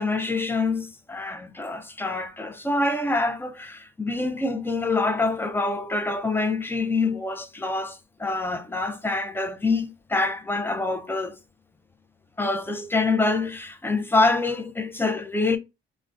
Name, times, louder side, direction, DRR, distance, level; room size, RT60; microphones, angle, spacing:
voice 1, 0.0-11.3 12.4-15.6, left 3 dB, 10° left, 0.4 m, -26 dB
2.4 x 2.1 x 3.7 m
cardioid pair, 90°, 20 cm